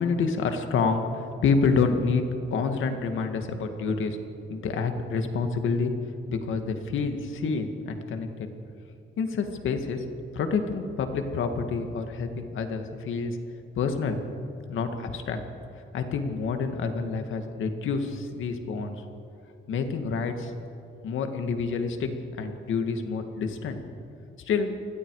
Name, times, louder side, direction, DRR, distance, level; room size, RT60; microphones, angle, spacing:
voice 1, 0.0-2.2 2.5-4.2 4.5-5.9 6.3-8.5 9.2-10.0 10.3-13.4 13.8-14.2 14.7-15.4 15.9-19.0 19.7-20.5 21.0-22.1 22.4-23.8 24.5-24.7, left 5 dB, 75° left, 6 dB, 2.1 m, -28 dB
28.0 x 21.0 x 4.9 m, 2.7 s
cardioid pair, 155°, 21 cm